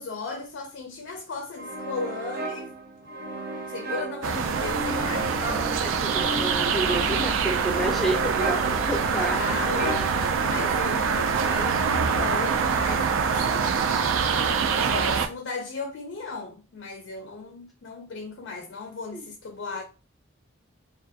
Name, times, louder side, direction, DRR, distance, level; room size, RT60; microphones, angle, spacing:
voice 1, 0.0-2.7 3.3-5.4 9.1-10.0 10.4-13.8 14.9-19.8, left 3 dB, 70° left, 0.4 m, -36 dB
sound 1, 1.6-11.1, right 2 dB, 50° right, 0.6 m, -35 dB
sound 2, 4.2-15.3, right 6 dB, 85° right, 0.3 m, -25 dB
voice 2, 5.8-9.4 19.1-19.3, right 2 dB, ahead, 0.5 m, -30 dB
2.3 x 2.3 x 2.7 m
head